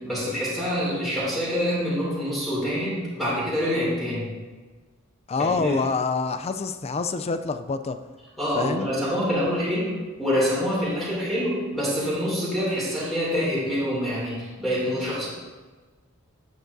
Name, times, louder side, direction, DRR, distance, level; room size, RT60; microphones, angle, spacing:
voice 1, 0.0-4.3 5.5-5.8 8.4-15.3, equal, ahead, -8 dB, 2.6 m, -26 dB
voice 2, 5.3-8.0 8.5-8.9, left 4 dB, 30° left, 10 dB, 0.4 m, -26 dB
10.5 x 7.8 x 2.7 m, 1.3 s
head